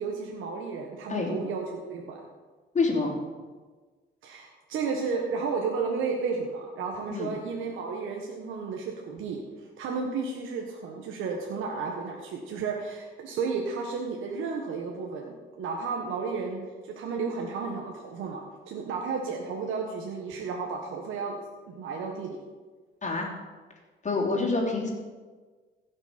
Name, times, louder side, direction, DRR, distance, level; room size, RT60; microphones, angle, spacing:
voice 1, 0.0-2.2 4.2-21.4 21.7-22.3, right 5 dB, 85° right, 0 dB, 1.4 m, -33 dB
voice 2, 2.7-3.2 7.1-7.3 23.0-23.3 24.0-24.9, left 3 dB, 35° left, -2 dB, 3.1 m, -27 dB
16.0 x 6.2 x 5.2 m, 1.4 s
cardioid pair, 90°, 20 cm